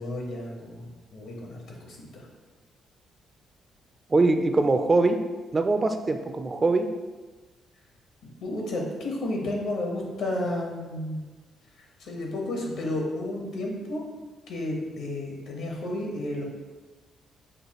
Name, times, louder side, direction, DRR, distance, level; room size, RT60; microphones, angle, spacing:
voice 1, 0.0-2.3 8.4-11.2 12.0-14.0 14.5-16.4, left 1 dB, 75° left, 0 dB, 1.1 m, -32 dB
voice 2, 4.1-5.2 5.5-6.9, right 3 dB, 30° right, 7 dB, 0.3 m, -22 dB
6.4 x 2.4 x 3.0 m, 1.3 s
cardioid pair, 90°, 0 cm